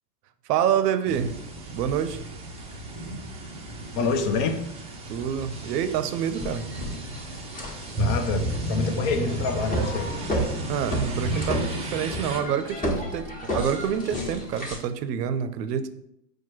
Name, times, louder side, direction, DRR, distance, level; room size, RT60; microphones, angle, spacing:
voice 1, 0.5-1.3 1.7-2.2 5.1-6.6 10.7-15.9, right 8 dB, 85° right, 11 dB, 0.6 m, -27 dB
sound 1, 1.0-12.4, right 1 dB, 15° right, 0.5 m, -33 dB
voice 2, 4.0-4.6 8.0-10.1, left 4 dB, 40° left, 6 dB, 0.5 m, -26 dB
sound 2, 5.5-5.6 6.1-14.8, equal, 15° left, 1.1 m, -32 dB
4.5 x 2.2 x 4.5 m, 0.79 s
supercardioid pair, 130°, 47 cm